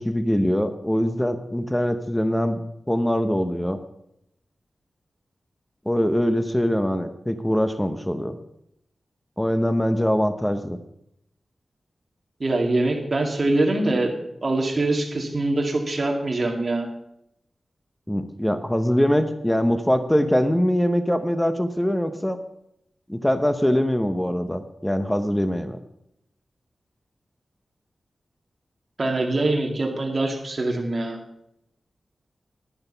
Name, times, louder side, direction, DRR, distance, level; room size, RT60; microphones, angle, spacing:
voice 1, 0.0-3.8 5.9-8.3 9.4-10.8 18.1-22.4 23.1-25.8, equal, 5° left, 9 dB, 0.7 m, -23 dB
voice 2, 12.4-14.1 14.4-16.9 29.0-31.2, right 2 dB, 40° right, 1 dB, 2.2 m, -23 dB
11.0 x 10.5 x 5.5 m, 0.78 s
wide cardioid pair, 135°, 0 cm